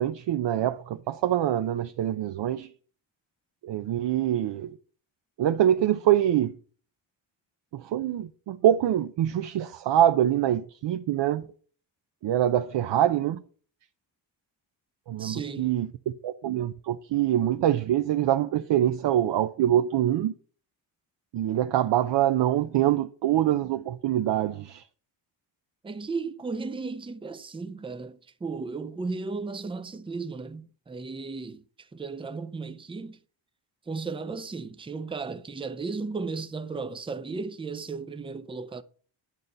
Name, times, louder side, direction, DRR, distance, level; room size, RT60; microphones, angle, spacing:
voice 1, 0.0-2.7 3.6-4.7 5.4-6.6 7.7-11.5 12.2-13.4 15.1-15.9 16.2-20.3 21.3-24.8, right 11 dB, 60° right, 0.6 m, -24 dB
voice 2, 15.2-15.7 25.8-31.6 31.9-33.2 33.9-38.8, right 4 dB, 10° right, 0.5 m, -35 dB
10.5 x 4.1 x 7.8 m
wide cardioid pair, 175°, 48 cm